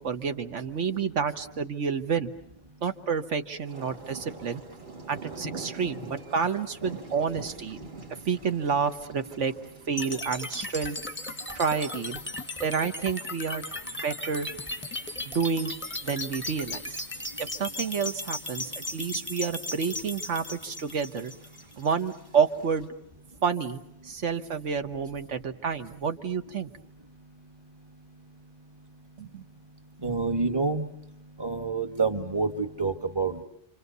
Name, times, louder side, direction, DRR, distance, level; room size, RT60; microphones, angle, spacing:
voice 1, 0.0-2.3 2.8-4.6 5.1-7.8 8.3-9.5 9.9-11.0 11.5-12.2 12.6-13.6 14.0-14.5 15.2-15.7 16.0-17.0 17.4-21.3 21.8-22.9 23.4-26.7 29.2-29.4, right 6 dB, 70° right, 8 dB, 1.5 m, -29 dB
sound 1, 3.6-22.9, right 3 dB, 40° right, 2.0 m, -47 dB
sound 2, 10.0-22.0, left 2 dB, 10° left, 1.2 m, -36 dB
voice 2, 30.0-30.9 31.4-33.4, right 4 dB, 20° right, 6 dB, 1.3 m, -27 dB
27.5 x 26.5 x 6.8 m, 0.73 s
omnidirectional pair, 1.3 m